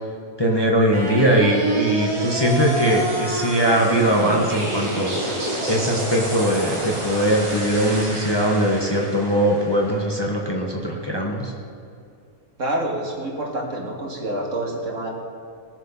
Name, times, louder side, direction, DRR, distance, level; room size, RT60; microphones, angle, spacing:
voice 1, 0.4-11.5, right 1 dB, 20° left, -1 dB, 1.3 m, -21 dB
sound 1, 0.9-11.0, right 1 dB, 20° right, 1.9 m, -28 dB
voice 2, 12.6-15.1, right 1 dB, 65° right, -1 dB, 2.2 m, -27 dB
19.0 x 7.4 x 5.7 m, 2.4 s
omnidirectional pair, 1.4 m